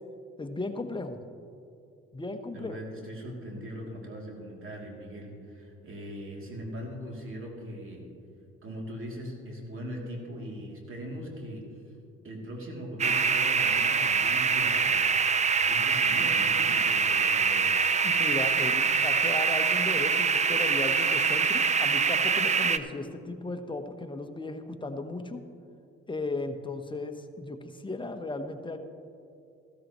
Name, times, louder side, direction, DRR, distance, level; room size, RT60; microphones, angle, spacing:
voice 1, 0.4-1.2 2.1-2.8 18.0-25.4 26.1-28.8, left 2 dB, 15° left, 6 dB, 1.1 m, -35 dB
voice 2, 2.5-8.1 8.6-11.7 12.2-15.2 15.6-17.7, equal, 45° right, -1 dB, 3.0 m, -40 dB
sound 1, 13.0-22.8, right 5 dB, 25° right, 0.5 m, -24 dB
15.0 x 13.5 x 3.1 m, 2.5 s
supercardioid pair, 60°, 29 cm